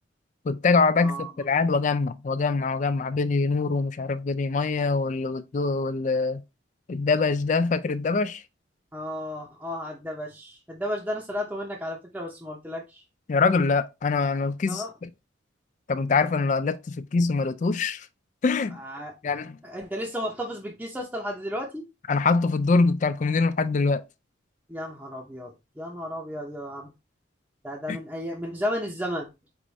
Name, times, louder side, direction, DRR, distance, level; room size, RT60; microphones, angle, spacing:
voice 1, 0.5-6.4 6.9-8.4 13.3-15.1 15.9-18.1 18.4-18.8 19.2-19.6 22.1-24.0 27.9-28.0, left 4 dB, 40° left, 0.3 m, -24 dB
voice 2, 1.0-1.3 8.9-13.0 14.7-14.9 18.8-19.1 19.6-21.8 24.7-25.5 25.8-26.9 27.6-29.3, equal, 10° right, 0.7 m, -33 dB
4.8 x 2.6 x 3.9 m
head